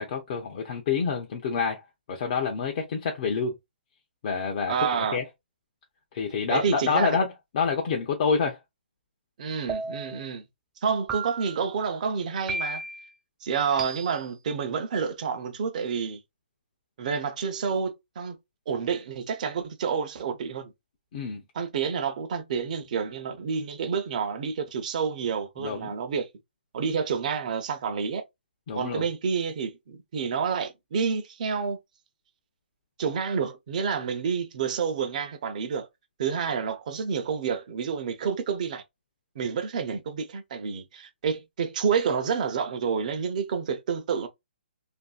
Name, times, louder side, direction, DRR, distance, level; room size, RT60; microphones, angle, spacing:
voice 1, 0.0-1.8 2.1-3.6 4.2-5.2 6.1-7.3 7.5-8.6 21.1-21.4 25.6-25.9 28.7-29.0, left 5 dB, 35° left, 0.6 m, -27 dB
voice 2, 4.7-5.2 6.5-7.2 9.4-10.4 10.8-12.8 13.4-16.2 17.0-18.4 18.7-20.7 21.5-26.3 26.7-28.2 28.7-31.8 33.0-35.9 36.2-38.8 39.4-44.3, right 6 dB, 45° right, 0.7 m, -29 dB
sound 1, 9.7-10.3 11.1-11.7 12.5-13.1 13.8-14.4, right 3 dB, 10° right, 0.3 m, -34 dB
2.6 x 2.6 x 2.3 m
hypercardioid pair, 160°, 6 cm